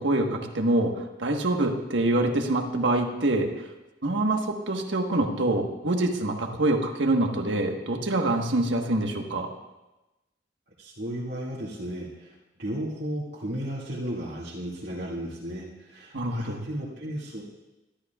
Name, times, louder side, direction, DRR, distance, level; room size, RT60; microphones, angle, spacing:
voice 1, 0.0-3.6 4.0-9.5 16.1-16.7, right 2 dB, 85° right, 3 dB, 1.4 m, -25 dB
voice 2, 10.8-17.4, right 1 dB, 65° right, -8 dB, 2.3 m, -34 dB
23.5 x 13.0 x 2.4 m, 1.0 s
head